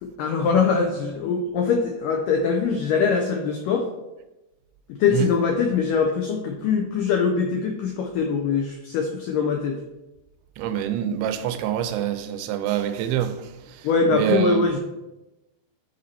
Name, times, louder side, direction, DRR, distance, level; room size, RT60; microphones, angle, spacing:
voice 1, 0.0-3.9 5.0-9.8 11.0-11.2 13.8-14.8, left 5 dB, 85° left, 1.9 m, -23 dB
voice 2, 10.6-13.5 14.1-14.7, right 10 dB, 85° right, 2.6 m, -25 dB
10.0 x 4.3 x 4.2 m
omnidirectional pair, 4.6 m